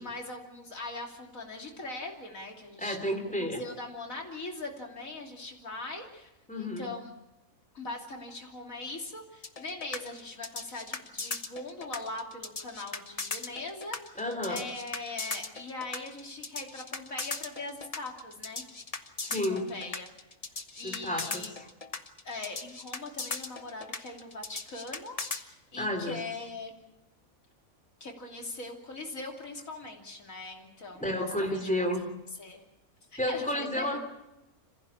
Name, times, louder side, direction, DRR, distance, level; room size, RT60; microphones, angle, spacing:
voice 1, 0.0-3.0 3.3-6.3 6.6-7.1 7.7-14.2 14.5-18.6 19.3-20.1 20.8-21.5 22.2-26.7 28.0-31.7 32.4-32.6 33.1-34.0, left 2 dB, 65° left, 1 dB, 3.4 m, -41 dB
voice 2, 2.8-3.6 6.5-6.9 14.1-14.6 19.2-19.7 20.8-21.7 25.8-26.2 31.0-32.1 33.2-34.0, left 1 dB, 5° left, 4 dB, 3.3 m, -31 dB
sound 1, 9.4-25.4, left 3 dB, 30° left, 1.1 m, -37 dB
27.0 x 15.5 x 8.6 m, 0.97 s
omnidirectional pair, 1.5 m